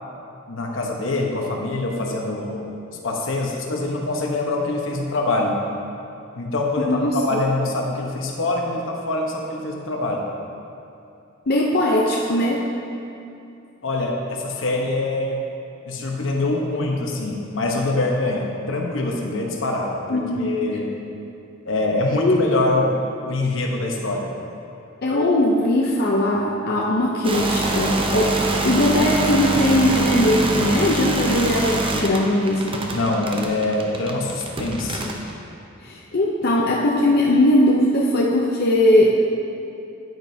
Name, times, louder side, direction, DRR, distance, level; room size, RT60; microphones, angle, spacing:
voice 1, 0.5-2.7 3.0-5.6 6.3-10.3 13.8-15.4 15.9-20.9 21.6-24.3 32.8-35.1, left 2 dB, 75° left, 0 dB, 1.0 m, -24 dB
voice 2, 6.8-7.4 11.5-12.7 20.1-20.5 22.1-22.5 25.0-28.4 28.6-32.8 35.8-39.1, left 1 dB, 50° left, -3 dB, 0.6 m, -19 dB
sound 1, 27.2-35.3, right 2 dB, 25° right, 0.7 m, -24 dB
9.5 x 9.3 x 2.8 m, 2.7 s
head